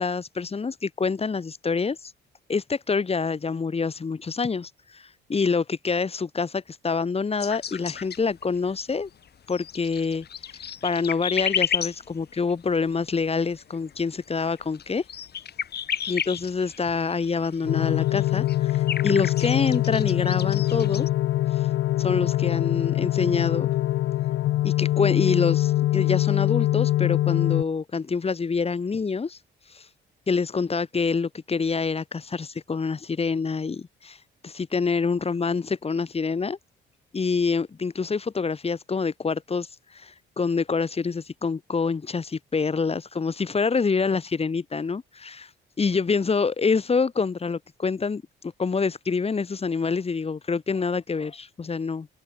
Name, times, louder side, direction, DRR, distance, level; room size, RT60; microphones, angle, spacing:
voice 1, 0.0-2.1 2.5-5.0 5.3-9.1 9.5-10.2 10.8-15.0 16.1-21.1 22.0-23.7 24.6-29.4 29.7-29.8 30.3-34.2 34.4-36.6 37.1-39.7 39.9-45.5 45.8-52.1, left 5 dB, 30° left, 1.7 m, -26 dB
sound 1, 7.4-8.7 9.0-21.1, left 8 dB, 55° left, 2.6 m, -33 dB
sound 2, 17.7-27.6, left 14 dB, 75° left, 0.6 m, -23 dB
cardioid pair, 90°, 20 cm